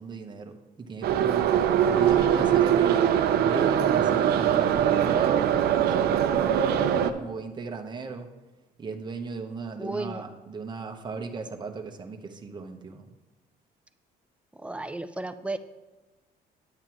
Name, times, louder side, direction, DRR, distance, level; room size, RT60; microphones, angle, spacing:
voice 1, 0.0-1.5 1.9-8.3 8.8-13.1, right 4 dB, 25° right, 4 dB, 1.0 m, -36 dB
Subway metro underground, 1.0-7.1, right 9 dB, 70° right, 0.6 m, -22 dB
voice 2, 1.8-2.6 9.8-10.2 14.6-15.6, right 2 dB, 5° right, 10 dB, 0.5 m, -34 dB
9.7 x 8.8 x 3.0 m, 1.2 s
cardioid pair, 110°, 17 cm